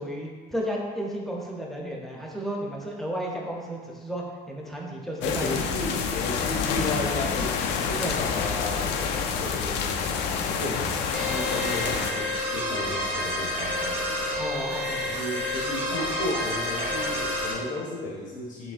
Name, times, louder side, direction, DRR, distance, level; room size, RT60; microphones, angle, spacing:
voice 1, 0.0-5.5 5.9-6.0 8.0-8.5 14.4-15.3, equal, ahead, -2 dB, 0.6 m, -33 dB
sound 1, 5.2-12.1, left 6 dB, 80° left, 0.4 m, -28 dB
voice 2, 5.2-14.3 15.0-18.7, left 2 dB, 65° left, -2 dB, 0.7 m, -34 dB
sound 2, 11.1-17.5, left 1 dB, 40° right, 1.3 m, -29 dB
5.2 x 3.0 x 2.5 m, 1.5 s
cardioid pair, 110°, 17 cm